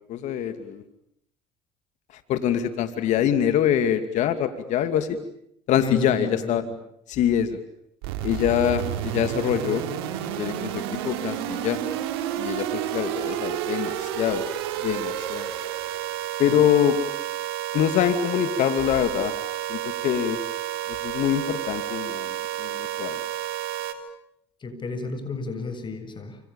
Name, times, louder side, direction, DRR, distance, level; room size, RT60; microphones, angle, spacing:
voice 1, 0.1-0.8 2.3-5.2 5.7-6.6 7.1-7.6 8.2-9.8 10.4-11.8 12.4-14.4 14.8-15.5 16.4-17.0 17.7-19.3 19.7-20.4 20.9-23.2, left 10 dB, 70° left, 9 dB, 2.6 m, -24 dB
voice 2, 5.8-6.7 16.5-16.6 24.6-26.4, left 2 dB, 40° left, 9 dB, 7.5 m, -33 dB
sound 1, 8.0-23.9, right 11 dB, 90° right, 3.5 m, -30 dB
29.0 x 27.0 x 7.2 m, 0.74 s
supercardioid pair, 70°, 13 cm